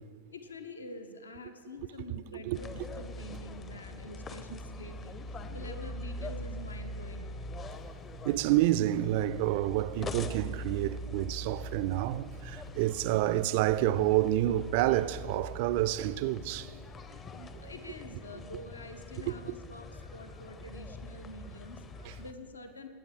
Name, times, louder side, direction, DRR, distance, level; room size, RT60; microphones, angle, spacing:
voice 1, 0.3-7.5 17.2-22.9, left 1 dB, 75° left, 0.9 m, -47 dB
sound 1, 2.5-22.3, left 1 dB, 25° left, 0.6 m, -43 dB
voice 2, 8.2-16.7 17.1-17.7 19.3-19.4 22.0-22.1, right 14 dB, 50° right, 0.3 m, -29 dB
19.0 x 8.6 x 3.7 m
figure-of-eight pair, 90°, 0 cm